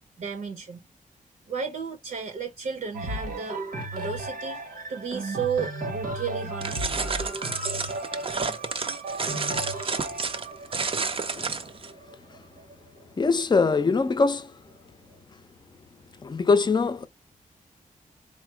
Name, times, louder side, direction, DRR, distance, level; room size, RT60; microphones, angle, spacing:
voice 1, 0.2-0.8 1.5-3.6 3.9-4.6 4.9-6.9, right 6 dB, 65° right, 0.8 m, -33 dB
sound 1, 2.9-12.7 13.4-13.5, right 2 dB, 85° right, 1.1 m, -35 dB
sound 2, 6.6-11.9, right 4 dB, 40° right, 0.5 m, -30 dB
voice 2, 11.3-11.6 13.2-14.5 16.2-17.1, left 4 dB, 30° left, 0.5 m, -23 dB
4.4 x 2.0 x 4.4 m
wide cardioid pair, 120°, 15 cm